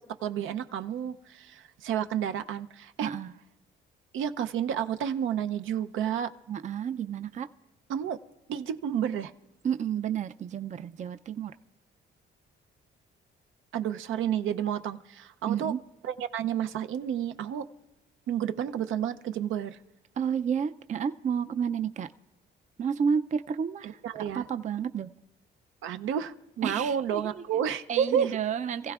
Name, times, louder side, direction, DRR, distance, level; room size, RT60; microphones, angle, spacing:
voice 1, 0.2-3.1 4.1-6.3 7.9-8.2 8.5-9.3 13.7-15.7 16.0-17.7 18.3-19.8 23.8-24.5 25.8-28.4, right 9 dB, 80° right, 9 dB, 0.6 m, -30 dB
voice 2, 3.0-3.3 6.5-7.5 9.6-11.5 15.5-15.8 20.2-22.1 22.8-25.1 26.6-27.4 27.9-28.9, right 7 dB, 35° right, 11 dB, 0.4 m, -31 dB
27.0 x 15.5 x 2.4 m, 0.96 s
cardioid pair, 90°, 20 cm